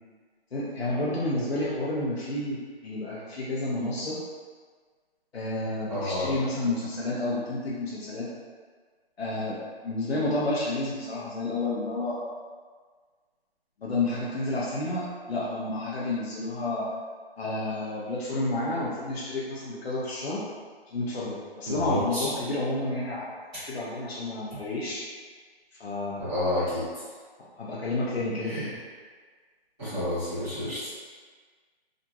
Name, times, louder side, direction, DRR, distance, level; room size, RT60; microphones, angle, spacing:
voice 1, 0.5-4.2 5.3-8.3 9.2-12.2 13.8-16.9 17.4-20.5 20.9-23.4 23.6-25.0 25.8-26.3 26.6-26.7 27.4-28.7, left 2 dB, 80° left, -7 dB, 0.7 m, -30 dB
voice 2, 5.9-6.3 21.7-22.2 26.2-26.8 28.5-28.7 29.8-30.9, left 1 dB, 5° left, -29 dB, 0.7 m, -29 dB
2.9 x 2.5 x 2.2 m, 1.5 s
hypercardioid pair, 170°, 31 cm